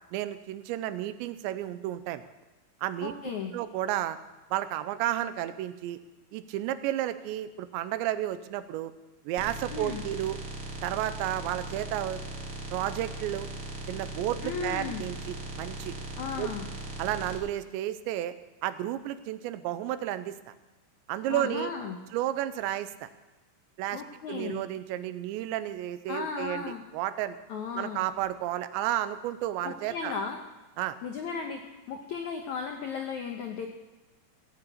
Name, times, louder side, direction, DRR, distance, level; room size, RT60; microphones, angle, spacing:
voice 1, 0.1-2.2 2.8-4.2 4.5-6.0 6.3-8.9 9.3-10.4 10.8-12.2 12.7-13.5 13.9-15.9 16.4-16.5 17.0-18.3 18.6-20.5 21.1-21.7 22.1-23.1 23.8-24.0 24.3-26.7 26.9-27.4 27.8-30.1 30.8-31.0, right 13 dB, 90° right, 12 dB, 3.0 m, -32 dB
voice 2, 3.0-3.6 9.7-10.0 14.4-15.1 16.2-16.7 21.3-22.0 23.9-24.7 26.1-26.8 27.5-28.1 29.6-30.4 31.0-33.7, left 6 dB, 85° left, 3 dB, 1.6 m, -35 dB
sound 1, 9.4-17.4, right 2 dB, 40° right, 1.3 m, -39 dB
17.0 x 7.9 x 8.6 m, 1.1 s
omnidirectional pair, 5.1 m